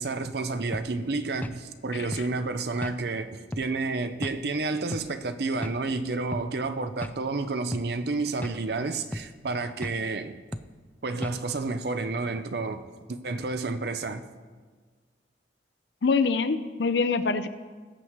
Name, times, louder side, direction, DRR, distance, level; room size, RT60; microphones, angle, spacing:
voice 1, 0.0-10.4 11.0-12.8 13.1-14.2, right 3 dB, 60° right, 0.6 m, -30 dB
sound 1, 0.7-0.9 1.4-1.6 2.1-2.3 2.8-3.0 3.5-3.7 4.2-4.4 4.9-5.1 5.6-5.8 6.3-6.5 7.0-7.2 7.7-7.9 8.4-8.6 9.1-9.3 9.8-10.0 10.5-10.7 11.2-11.4, left 1 dB, 10° left, 0.3 m, -35 dB
voice 2, 16.0-17.5, left 4 dB, 75° left, 0.6 m, -24 dB
19.0 x 8.1 x 3.1 m
head